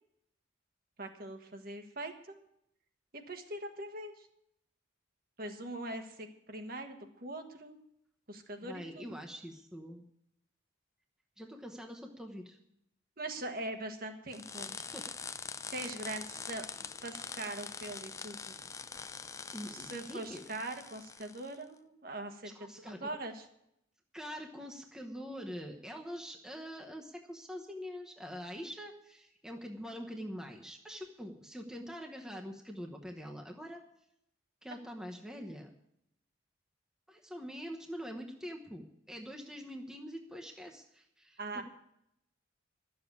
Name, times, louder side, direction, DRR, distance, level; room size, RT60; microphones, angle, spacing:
voice 1, 1.0-2.4 3.3-4.3 5.4-7.8 8.3-9.1 13.2-14.7 15.7-16.6 17.0-18.6 19.7-23.4 41.4-41.6, right 2 dB, 50° right, 5 dB, 1.4 m, -42 dB
voice 2, 8.6-10.0 11.4-12.6 14.7-15.2 19.5-20.6 22.4-23.1 24.1-33.8 34.6-35.7 37.1-41.6, equal, 5° right, 1 dB, 1.0 m, -44 dB
sound 1, 14.3-21.5, left 5 dB, 15° left, 0.4 m, -44 dB
12.5 x 7.1 x 9.4 m, 0.76 s
head